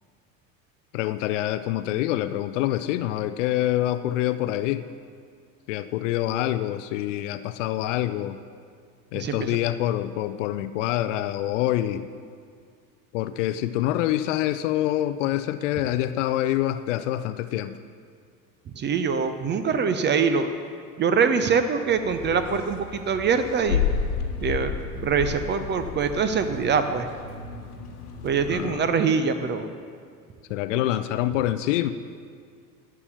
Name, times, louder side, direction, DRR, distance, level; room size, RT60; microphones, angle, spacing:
voice 1, 0.9-4.9 5.7-8.4 9.1-12.1 13.1-17.8 28.5-28.9 30.5-31.9, left 13 dB, 50° left, 13 dB, 0.5 m, -26 dB
voice 2, 9.1-9.6 18.8-20.5 21.0-23.8 24.4-27.1 28.2-29.7 30.7-30.8, right 6 dB, 25° right, 9 dB, 0.7 m, -24 dB
sound 1, 21.9-28.6, left 6 dB, 70° left, 1.3 m, -32 dB
11.0 x 7.0 x 6.9 m, 2.1 s
figure-of-eight pair, 75°, 47 cm